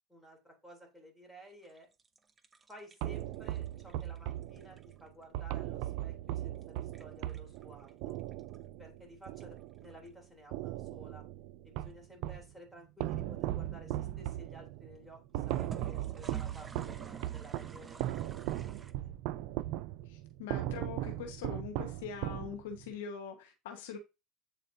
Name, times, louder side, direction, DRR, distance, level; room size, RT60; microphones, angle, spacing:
voice 1, 0.1-1.9 2.7-8.2 8.8-11.2 11.6-19.2, equal, ahead, -1 dB, 3.2 m, -54 dB
sound 1, 1.6-5.2 6.6-8.6 9.2-10.1 15.4-18.9, right 4 dB, 20° right, 0.7 m, -51 dB
sound 2, 3.0-10.1 10.5-12.5 13.0-22.9, right 14 dB, 65° right, 0.4 m, -38 dB
voice 2, 20.1-24.0, left 7 dB, 80° left, 5 dB, 1.3 m, -43 dB
8.3 x 4.2 x 2.7 m, 0.26 s
supercardioid pair, 100°, 0 cm